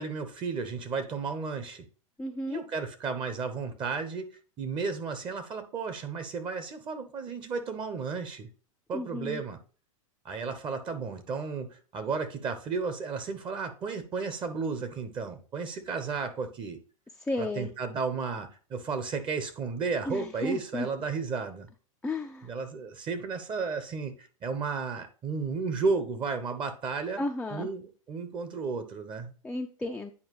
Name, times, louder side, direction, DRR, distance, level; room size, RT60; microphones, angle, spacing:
voice 1, 0.0-1.8 2.5-4.3 4.6-8.5 8.9-9.6 10.2-16.8 17.4-21.7 22.4-27.2 27.5-29.3, right 4 dB, 30° right, 1.0 m, -33 dB
voice 2, 2.2-2.6 8.9-9.4 17.2-17.7 20.1-20.9 22.0-22.5 27.2-27.7 29.4-30.1, left 2 dB, 5° left, 0.5 m, -33 dB
9.8 x 4.5 x 3.0 m
hypercardioid pair, 105°, 18 cm